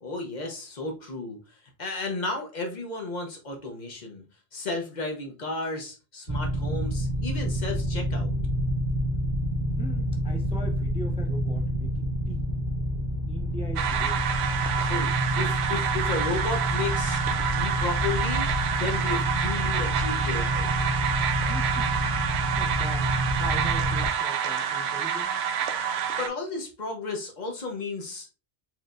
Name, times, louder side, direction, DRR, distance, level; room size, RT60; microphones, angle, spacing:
voice 1, 0.0-4.2 4.5-8.3 14.8-17.2 17.5-20.7 26.2-28.3, left 3 dB, 45° left, 2 dB, 0.8 m, -33 dB
sound 1, 6.3-24.1, equal, 50° right, 1.8 m, -28 dB
voice 2, 9.8-12.5 13.3-14.3 21.5-25.4, right 1 dB, 10° right, 1 dB, 0.4 m, -40 dB
sound 2, 13.8-26.3, right 8 dB, 75° right, 0.8 m, -28 dB
4.5 x 3.1 x 2.5 m, 0.32 s
omnidirectional pair, 1.2 m